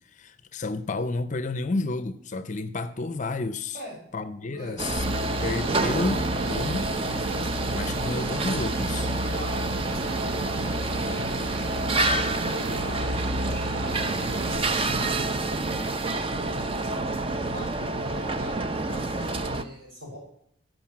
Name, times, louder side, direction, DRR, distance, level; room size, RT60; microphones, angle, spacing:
voice 1, 0.1-3.8 4.1-5.1 5.4-6.9 7.7-9.1, left 3 dB, 35° left, 12 dB, 0.5 m, -31 dB
voice 2, 4.4-4.8 9.3-11.2 11.9-15.3 16.4-17.0 17.3-20.2, left 1 dB, 50° right, -3 dB, 6.1 m, -43 dB
sound 1, 4.8-19.6, right 2 dB, 25° right, 0.6 m, -28 dB
sound 2, 5.0-14.6, equal, 85° right, 0.9 m, -33 dB
13.0 x 5.3 x 7.3 m, 0.69 s
head